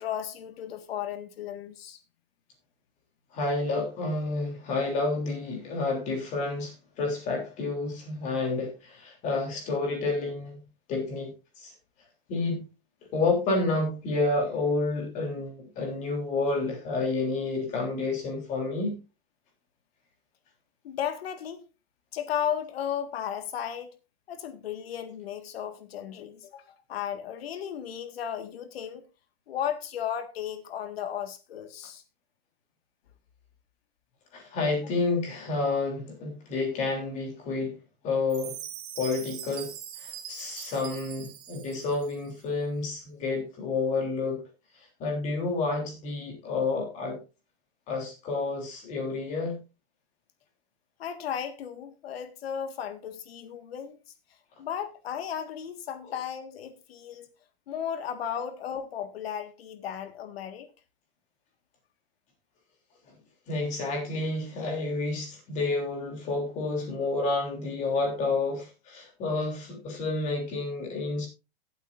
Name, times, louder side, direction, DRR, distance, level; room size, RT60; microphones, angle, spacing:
voice 1, 0.0-2.0 20.8-21.6 22.1-23.9 24.3-29.1 29.5-32.0 51.0-54.0 54.6-57.3 57.7-60.7, left 9 dB, 85° left, 1.9 m, -35 dB
voice 2, 3.3-10.6 10.9-11.7 12.3-12.7 13.1-19.0 34.3-37.8 38.0-38.6 39.0-39.7 40.0-44.4 45.0-47.2 47.9-49.6 56.0-56.1 63.5-71.3, left 3 dB, 25° left, 3.3 m, -30 dB
Chime, 38.3-42.3, right 10 dB, 60° right, 2.1 m, -42 dB
17.5 x 8.2 x 2.6 m
supercardioid pair, 175°, 30 cm